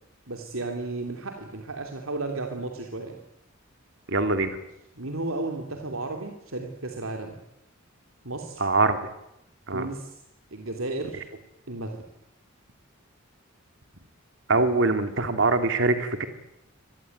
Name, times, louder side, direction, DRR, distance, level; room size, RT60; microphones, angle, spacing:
voice 1, 0.3-3.2 4.9-7.4 8.2-8.7 9.7-10.1 10.5-11.2 11.7-12.0, right 2 dB, 80° right, 3 dB, 3.1 m, -33 dB
voice 2, 4.1-4.5 8.6-9.0 9.7-9.8 14.5-16.3, right 3 dB, 65° right, 8 dB, 2.5 m, -23 dB
25.0 x 19.5 x 9.4 m, 0.85 s
head